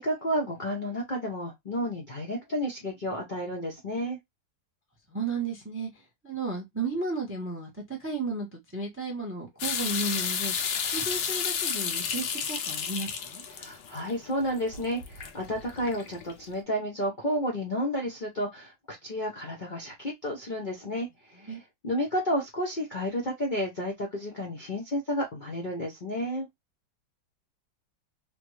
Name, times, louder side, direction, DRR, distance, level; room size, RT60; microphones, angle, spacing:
voice 1, 0.0-4.2 13.6-21.6 21.8-26.5, equal, 45° left, 0.6 m, -31 dB
voice 2, 5.1-10.5 10.9-13.4 21.4-21.6, right 3 dB, 15° right, 0.5 m, -34 dB
sound 1, 9.6-16.4, left 7 dB, 80° left, 1.3 m, -32 dB
3.2 x 2.2 x 3.1 m
omnidirectional pair, 1.9 m